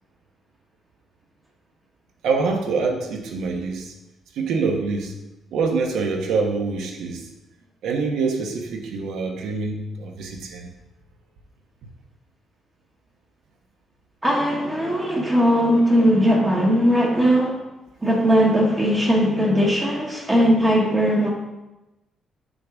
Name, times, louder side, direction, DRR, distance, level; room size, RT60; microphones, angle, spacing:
voice 1, 2.2-3.9 4.4-5.1 5.5-7.2 7.8-10.7, right 4 dB, 80° right, 3 dB, 1.1 m, -25 dB
voice 2, 14.2-17.6 18.0-21.3, equal, 15° right, -2 dB, 0.9 m, -19 dB
7.7 x 5.3 x 3.5 m, 1.0 s
cardioid pair, 170°, 0 cm